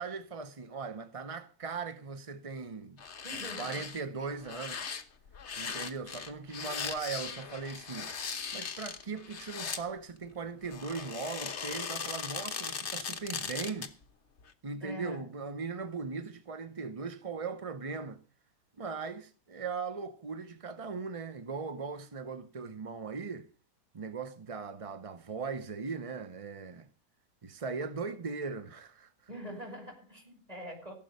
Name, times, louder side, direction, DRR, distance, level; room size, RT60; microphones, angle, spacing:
voice 1, 0.0-3.0 3.6-4.9 5.6-8.1 8.5-13.9 14.6-18.2 18.8-23.5 23.9-26.9 27.4-29.1, right 4 dB, 40° right, 0.5 m, -39 dB
sound 1, 3.0-4.0 4.4-9.8 10.6-14.0 14.4-14.5, left 6 dB, 45° left, 1.3 m, -39 dB
voice 2, 3.2-3.9 14.8-15.3 29.3-30.9, equal, 20° right, 5.4 m, -44 dB
16.5 x 7.5 x 6.6 m
omnidirectional pair, 1.8 m